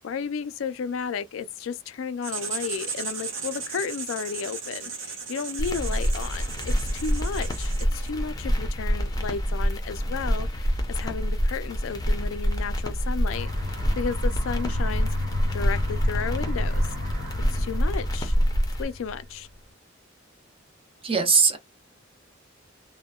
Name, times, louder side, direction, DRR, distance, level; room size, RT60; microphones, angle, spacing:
voice 1, 0.0-15.1 15.5-16.9 17.5-18.4 18.8-19.5, left 6 dB, 85° left, 0.4 m, -33 dB
Writing, 2.2-8.2, right 5 dB, 70° right, 0.8 m, -36 dB
sound 1, 5.6-18.8, equal, 20° left, 0.6 m, -27 dB
Aircraft, 13.3-19.4, left 1 dB, 55° right, 1.5 m, -32 dB
voice 2, 21.0-21.6, right 5 dB, 30° right, 0.7 m, -20 dB
2.7 x 2.1 x 2.2 m
head